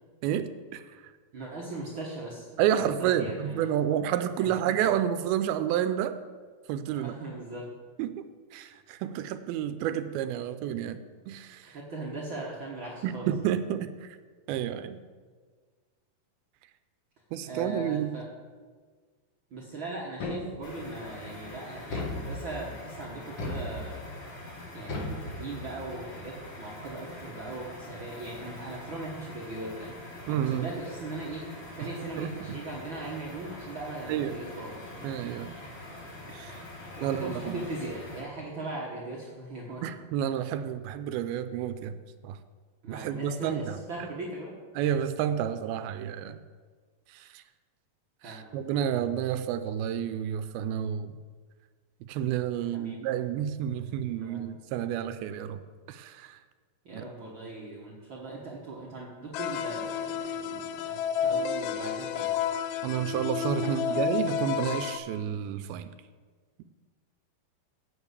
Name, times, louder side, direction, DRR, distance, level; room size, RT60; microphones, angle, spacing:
voice 1, 0.2-0.8 2.6-6.2 6.7-7.1 8.0-11.8 13.0-14.1 14.5-15.0 17.3-18.2 30.3-30.7 31.8-31.9 32.2-32.6 34.1-34.4 35.0-35.6 36.3-36.6 37.0-37.6 39.8-42.4 42.9-44.1 44.8-46.4 47.1-47.4 48.2-51.2 52.1-55.6 55.9-56.4 56.9-57.0 62.8-65.9, right 10 dB, 85° right, 11 dB, 2.4 m, -30 dB
voice 2, 1.3-3.7 4.4-4.7 6.9-7.7 9.9-10.1 11.6-13.5 17.4-18.3 19.5-24.0 24.7-31.5 31.8-35.1 37.0-39.9 42.8-44.5 48.2-48.7 52.6-53.1 54.0-54.5 56.8-62.3 63.6-64.0, right 2 dB, 70° right, -4 dB, 1.2 m, -39 dB
sound 1, 20.2-20.9 21.9-22.7 23.4-24.2 24.9-25.9, left 2 dB, 50° left, 2.1 m, -36 dB
sound 2, 20.6-38.2, left 1 dB, 65° left, 4.6 m, -44 dB
sound 3, 59.3-65.0, left 8 dB, 85° left, 1.9 m, -31 dB
8.9 x 6.8 x 8.1 m, 1.5 s
omnidirectional pair, 4.4 m